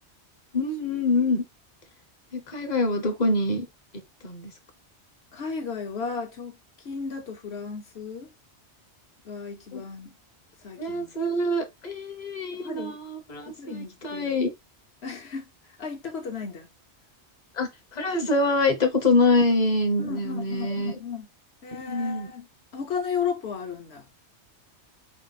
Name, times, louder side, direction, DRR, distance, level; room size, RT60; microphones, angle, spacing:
voice 1, 0.5-1.4 2.3-3.7 4.2-4.5 9.7-9.8 10.8-14.5 17.5-21.0 21.7-22.3, left 2 dB, 40° left, 1.0 m, -25 dB
voice 2, 5.3-8.3 9.2-10.2 10.6-11.2 12.6-13.0 13.5-14.4 15.0-15.5 15.8-16.7 20.0-21.3 21.6-22.5 22.7-24.1, left 6 dB, 65° left, 1.3 m, -34 dB
5.6 x 2.1 x 3.9 m
omnidirectional pair, 1.2 m